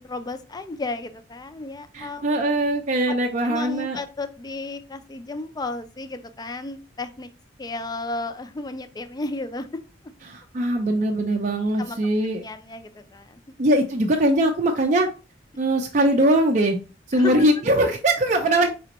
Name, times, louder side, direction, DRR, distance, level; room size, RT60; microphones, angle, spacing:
voice 1, 0.0-2.2 3.1-3.2 3.4-7.3 7.6-9.7 11.8-12.0 12.4-13.5 17.1-17.5, left 2 dB, 20° left, 10 dB, 0.4 m, -33 dB
voice 2, 1.9-4.0 10.3-12.4 13.6-15.1 15.6-16.8 17.1-18.7, right 1 dB, 40° right, 2 dB, 0.5 m, -21 dB
5.0 x 3.4 x 2.9 m, 0.33 s
head